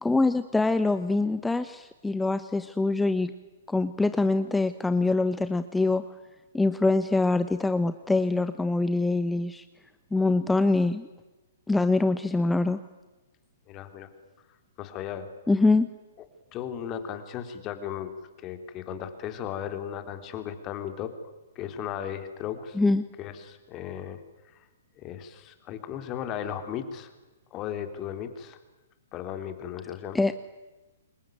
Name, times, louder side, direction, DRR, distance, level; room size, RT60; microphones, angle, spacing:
voice 1, 0.0-3.3 3.7-6.0 6.5-9.6 10.1-11.1 11.7-12.8 15.5-15.9 22.7-23.0 30.1-30.3, left 3 dB, 5° left, 11 dB, 1.0 m, -24 dB
voice 2, 13.7-14.1 14.8-15.3 16.5-18.1 18.4-21.1 21.6-22.8 23.2-24.2 25.0-27.1 27.5-28.6 29.1-30.2, left 9 dB, 30° left, 9 dB, 3.4 m, -36 dB
28.0 x 22.5 x 9.3 m, 1.1 s
figure-of-eight pair, 120°, 0 cm